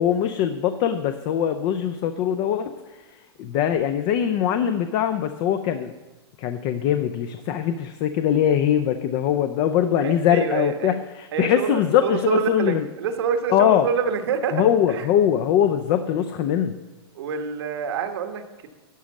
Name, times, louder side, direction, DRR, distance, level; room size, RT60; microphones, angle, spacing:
voice 1, 0.0-5.9 6.4-12.8 13.5-13.9 14.5-16.8, left 9 dB, 40° left, 9 dB, 0.5 m, -22 dB
voice 2, 10.0-11.0 11.3-14.6 14.9-15.1 17.1-18.7, right 6 dB, 75° right, 6 dB, 1.3 m, -27 dB
12.0 x 5.2 x 7.2 m, 1.1 s
hypercardioid pair, 135°, 13 cm